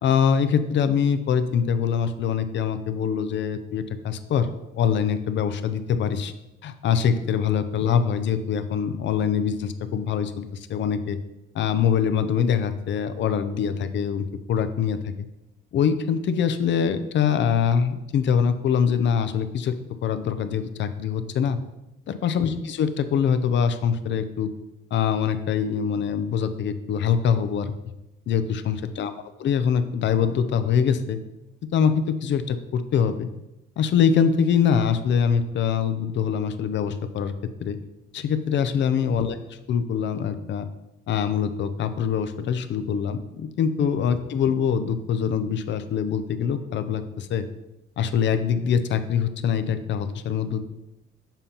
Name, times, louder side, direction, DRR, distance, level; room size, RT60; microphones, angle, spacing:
voice 1, 0.0-4.5 4.7-6.3 6.6-11.2 11.5-15.1 15.7-19.7 20.0-21.6 22.1-24.5 24.9-27.7 28.3-29.1 29.4-31.2 31.7-33.3 33.8-37.3 37.6-37.8 38.1-40.7 41.1-47.5 48.0-50.6, left 7 dB, 65° left, 10 dB, 0.6 m, -24 dB
7.2 x 2.8 x 5.5 m, 0.91 s
cardioid pair, 90°, 20 cm